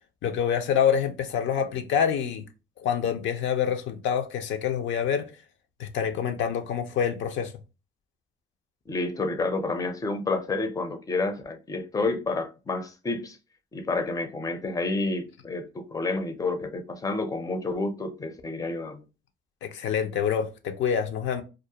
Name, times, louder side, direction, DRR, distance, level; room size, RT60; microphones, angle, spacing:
voice 1, 0.2-2.5 2.8-5.3 5.8-7.5 19.6-21.4, left 8 dB, 75° left, 0.5 m, -26 dB
voice 2, 8.9-13.4 13.7-19.0, left 3 dB, 15° left, 0.4 m, -29 dB
2.3 x 2.0 x 2.7 m
cardioid pair, 90°, 20 cm